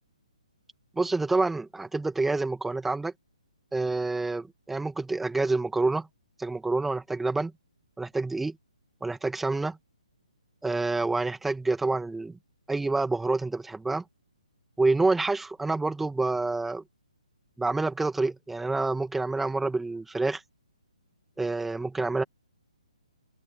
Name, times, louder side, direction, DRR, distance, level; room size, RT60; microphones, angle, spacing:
voice 1, 1.0-3.1 3.7-6.1 6.4-7.5 8.0-8.6 9.0-9.8 10.6-12.4 12.7-14.0 14.8-16.8 17.6-20.4 21.4-22.2, right 3 dB, 5° right, 2.3 m, -27 dB
open air
figure-of-eight pair, 135°, 4 cm